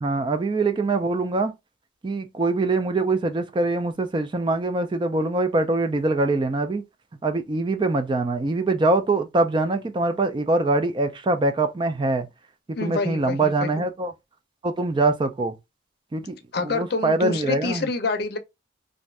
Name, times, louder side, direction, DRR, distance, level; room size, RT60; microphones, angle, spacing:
voice 1, 0.0-1.5 2.0-6.8 7.2-12.3 12.7-14.1 14.6-15.5 16.1-16.3 16.7-17.9, right 2 dB, 25° right, 0.3 m, -23 dB
voice 2, 12.7-13.7 16.5-18.4, left 3 dB, 55° left, 0.6 m, -27 dB
2.6 x 2.4 x 3.1 m
head